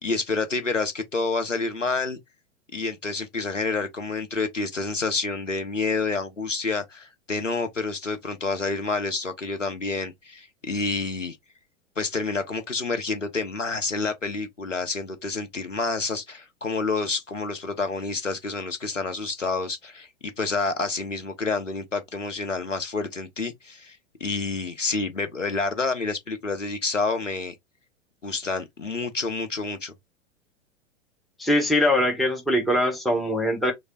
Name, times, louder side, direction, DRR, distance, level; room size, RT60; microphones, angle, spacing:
voice 1, 0.0-2.2 2.7-11.4 12.0-20.1 20.4-27.5 28.2-29.9, left 3 dB, 90° left, 0.8 m, -28 dB
voice 2, 31.4-33.7, left 1 dB, ahead, 0.6 m, -22 dB
3.2 x 2.2 x 3.7 m
figure-of-eight pair, 95°, 36 cm